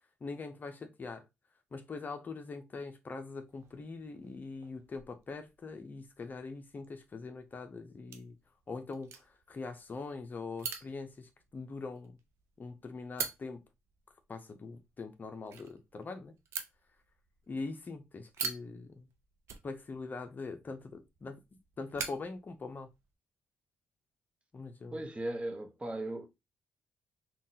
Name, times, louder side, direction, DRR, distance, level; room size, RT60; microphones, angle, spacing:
voice 1, 0.2-1.3 1.7-8.4 8.7-12.2 12.6-13.6 14.3-16.3 17.5-19.1 19.6-21.4 21.8-22.9 24.5-25.1, left 4 dB, 40° left, 0.5 m, -42 dB
sound 1, 3.5-23.1, right 6 dB, 70° right, 0.5 m, -47 dB
voice 2, 24.9-26.3, right 1 dB, 25° right, 0.9 m, -37 dB
3.7 x 2.3 x 2.7 m
supercardioid pair, 55°, 5 cm